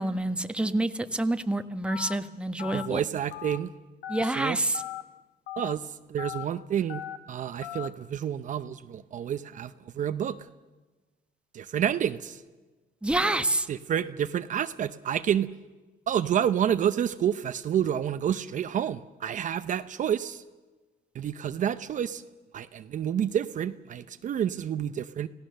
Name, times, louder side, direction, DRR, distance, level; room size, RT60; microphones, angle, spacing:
voice 1, 0.0-3.0 4.1-4.8 13.0-13.7, right 1 dB, 5° right, 7 dB, 1.2 m, -27 dB
Telephone, 1.9-2.1 2.6-2.9 3.3-3.6 4.0-4.3 4.7-5.0 5.5-5.7 6.2-6.4 6.9-7.2 7.6-7.9, left 13 dB, 70° left, 1.3 m, -37 dB
voice 2, 2.7-3.7 4.4-4.6 5.6-10.4 11.5-12.4 13.7-15.5 16.1-20.4 21.1-22.2 22.5-25.3, right 9 dB, 50° right, 10 dB, 0.7 m, -29 dB
29.5 x 17.0 x 6.6 m, 1.2 s
cardioid pair, 110°, 17 cm